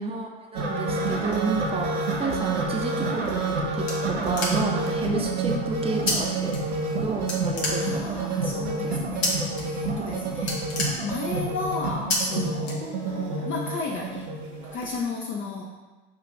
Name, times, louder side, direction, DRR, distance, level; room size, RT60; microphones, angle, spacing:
voice 1, 0.0-6.5 7.0-8.9 9.9-10.3, right 3 dB, 20° right, 1 dB, 0.6 m, -31 dB
sound 1, 0.5-15.0, right 3 dB, 85° right, 0.6 m, -29 dB
voice 2, 0.9-1.2 4.6-5.3 7.7-10.6 11.0-14.3 14.7-15.8, left 4 dB, 40° left, -2 dB, 0.6 m, -34 dB
sound 2, 3.6-4.9 6.1-6.2 6.5-7.0 7.3-8.2 9.2-9.6 10.0-10.1 10.4-11.5 12.1-12.2 12.6-13.3, left 2 dB, 80° left, 1.0 m, -29 dB
5.8 x 2.5 x 3.0 m, 1.3 s
hypercardioid pair, 65°, 32 cm